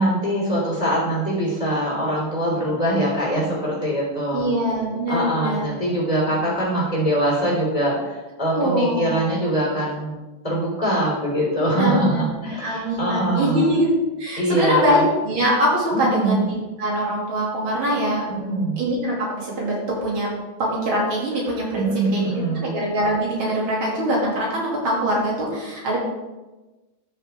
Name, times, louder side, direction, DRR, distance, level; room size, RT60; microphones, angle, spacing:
voice 1, 0.0-4.5 5.1-13.7 14.4-15.0 15.9-16.4 18.3-18.8 21.7-22.7, right 1 dB, 20° left, -5 dB, 3.8 m, -23 dB
voice 2, 4.3-5.6 8.5-9.2 11.8-12.3 12.6-18.3 18.8-20.3 20.6-26.0, equal, 90° right, -4 dB, 3.5 m, -23 dB
12.5 x 6.7 x 3.7 m, 1.1 s
omnidirectional pair, 2.2 m